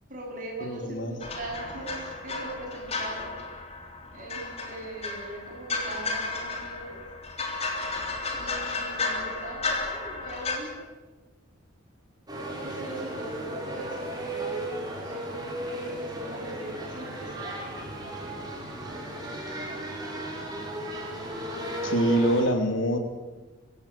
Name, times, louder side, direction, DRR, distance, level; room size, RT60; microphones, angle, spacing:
voice 1, 0.1-3.3 4.1-7.0 8.3-10.9 12.4-14.1 15.0-17.7, right 2 dB, 40° right, -1 dB, 7.8 m, -40 dB
voice 2, 0.6-1.2 21.8-23.0, equal, 70° left, 5 dB, 3.1 m, -25 dB
sound 1, 1.2-10.6, left 3 dB, 30° left, 3.6 m, -33 dB
sound 2, 12.3-22.4, right 1 dB, 20° right, 5.6 m, -35 dB
24.5 x 16.0 x 8.9 m, 1.3 s
head